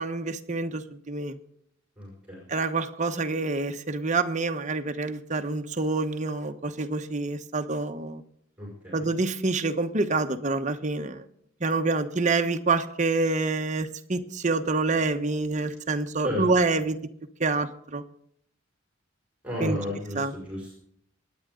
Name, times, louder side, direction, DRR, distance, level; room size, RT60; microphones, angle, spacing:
voice 1, 0.0-1.4 2.5-8.2 8.9-11.2 11.6-17.0 17.4-18.0 19.6-19.8 20.2-20.3, right 3 dB, 35° right, 7 dB, 1.0 m, -27 dB
voice 2, 2.0-2.4 8.6-9.1 16.2-16.4 19.4-20.7, left 1 dB, 5° right, -3 dB, 5.4 m, -33 dB
26.0 x 9.5 x 3.8 m, 0.70 s
head